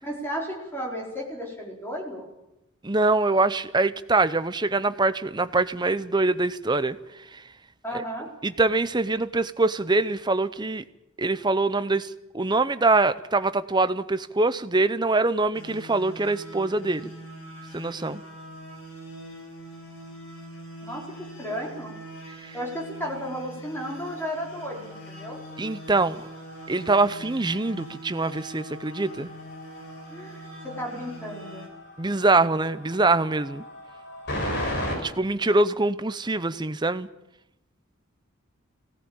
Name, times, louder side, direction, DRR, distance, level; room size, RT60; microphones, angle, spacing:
voice 1, 0.0-2.3 7.8-8.3 20.8-21.0 21.4-21.9 22.5-25.4 30.1-31.7, equal, 10° left, -1 dB, 4.4 m, -34 dB
voice 2, 2.8-7.0 7.3-7.4 8.4-10.8 11.2-17.1 17.7-18.2 22.4-22.5 25.6-26.2 26.7-29.3 32.0-33.6 35.0-37.1, right 3 dB, 20° right, 13 dB, 0.7 m, -24 dB
sound 1, 15.5-31.7, equal, 85° left, 7.9 m, -43 dB
sound 2, 24.8-35.0, left 1 dB, 55° left, 6.5 m, -37 dB
21.0 x 17.0 x 8.8 m, 0.92 s
head